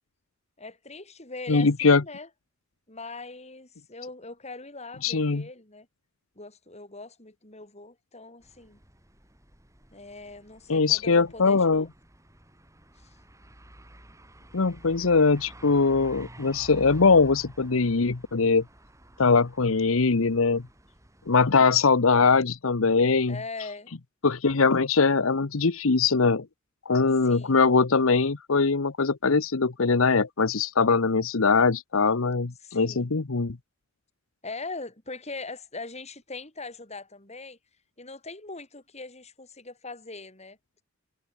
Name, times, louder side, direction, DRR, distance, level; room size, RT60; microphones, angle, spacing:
voice 1, 0.6-2.3 2.9-5.9 6.4-8.8 9.9-11.9 13.0-13.2 23.3-23.9 27.2-27.6 32.6-33.1 34.4-37.6 38.0-40.6, left 3 dB, 35° left, 6.3 m, -41 dB
voice 2, 1.5-2.0 5.0-5.4 10.7-11.8 14.5-18.6 19.2-20.6 21.3-23.4 24.2-26.4 26.9-33.6, left 4 dB, 85° left, 0.9 m, -22 dB
sound 1, 8.4-21.7, right 1 dB, 15° right, 7.1 m, -50 dB
head